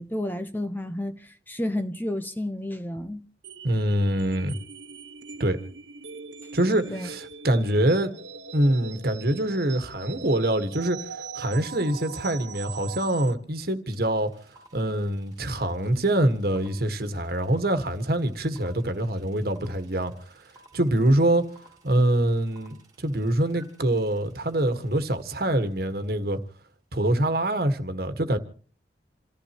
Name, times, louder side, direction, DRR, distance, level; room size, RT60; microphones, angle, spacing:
voice 1, 0.0-3.2 6.9-7.1, left 1 dB, 10° left, 0.8 m, -31 dB
sound 1, 3.4-13.3, right 5 dB, 80° right, 1.3 m, -41 dB
voice 2, 3.6-4.6 5.4-5.6 6.5-8.1 8.5-11.0 11.3-14.3 14.7-20.1 20.7-21.4 21.8-26.4 26.9-28.4, right 1 dB, 55° right, 1.7 m, -24 dB
sound 2, 13.9-14.0 14.2-25.4, right 2 dB, 20° right, 2.3 m, -55 dB
28.0 x 15.0 x 3.0 m
head